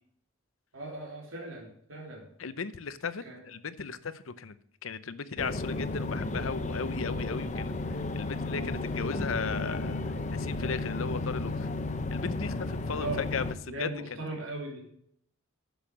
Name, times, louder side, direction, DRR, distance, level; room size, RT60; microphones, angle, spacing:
voice 1, 0.7-2.3 3.2-3.4 12.9-13.3 13.7-14.8, right 2 dB, 85° right, -1 dB, 3.1 m, -38 dB
voice 2, 2.4-4.6 4.8-7.8 8.1-11.7 12.1-14.2, left 5 dB, 85° left, 14 dB, 0.7 m, -36 dB
sound 1, 5.4-13.5, left 2 dB, 35° left, 0.7 m, -33 dB
10.5 x 6.9 x 6.1 m, 0.70 s
head